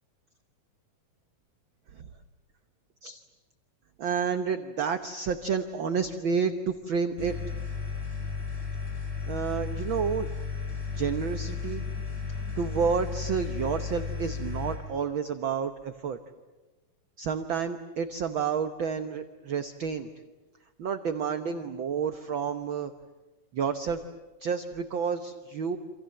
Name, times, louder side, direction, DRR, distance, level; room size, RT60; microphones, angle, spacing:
voice 1, 4.0-7.4 9.3-10.3 10.9-11.8 12.6-16.2 17.2-20.1 20.8-22.9 23.5-24.0 24.4-25.8, right 6 dB, 60° right, 8 dB, 1.3 m, -30 dB
sound 1, 7.2-14.7, left 4 dB, 60° left, 6.7 m, -34 dB
28.5 x 27.0 x 7.8 m, 1.2 s
omnidirectional pair, 3.5 m